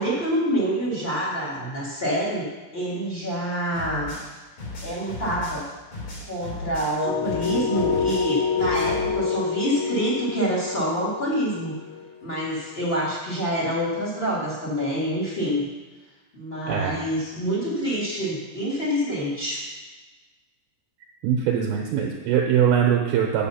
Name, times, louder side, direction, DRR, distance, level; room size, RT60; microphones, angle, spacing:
voice 1, 0.0-2.5 2.7-4.1 4.8-5.6 6.2-11.7 12.2-15.7 16.3-19.6, equal, 20° left, -6 dB, 1.8 m, -26 dB
sound 1, 3.7-7.0 7.2-9.1, left 2 dB, 50° left, 4.1 m, -36 dB
sound 2, 7.0-12.9, left 6 dB, 75° left, 4.0 m, -27 dB
voice 2, 16.7-17.0 21.2-23.5, right 8 dB, 75° right, 0 dB, 2.5 m, -22 dB
8.3 x 8.1 x 5.7 m, 1.3 s
omnidirectional pair, 4.9 m